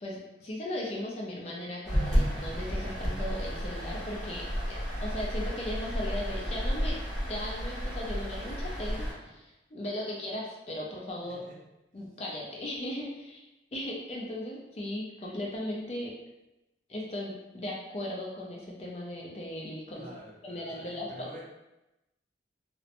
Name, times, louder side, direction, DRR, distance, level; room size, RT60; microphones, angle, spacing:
voice 1, 0.0-7.0 7.3-11.4 11.9-13.5 13.7-16.1 16.9-20.1 20.4-21.4, left 1 dB, 35° left, -3 dB, 0.4 m, -37 dB
sound 1, 1.8-9.1, equal, ahead, 1.0 m, -32 dB
voice 2, 11.2-11.6 19.9-21.4, equal, 40° right, -4 dB, 0.6 m, -48 dB
2.9 x 2.1 x 2.5 m, 0.96 s
head